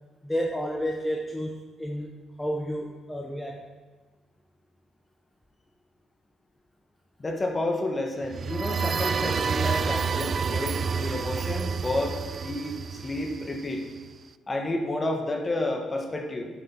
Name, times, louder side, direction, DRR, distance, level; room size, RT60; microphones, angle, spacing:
voice 1, 0.2-3.6, equal, 10° left, 1 dB, 0.9 m, -31 dB
voice 2, 7.2-13.8 14.5-16.5, left 1 dB, 25° left, 2 dB, 1.7 m, -30 dB
sound 1, 8.2-14.0, right 6 dB, 45° right, 0.3 m, -29 dB
10.5 x 7.9 x 4.2 m, 1.3 s
cardioid pair, 90°, 0 cm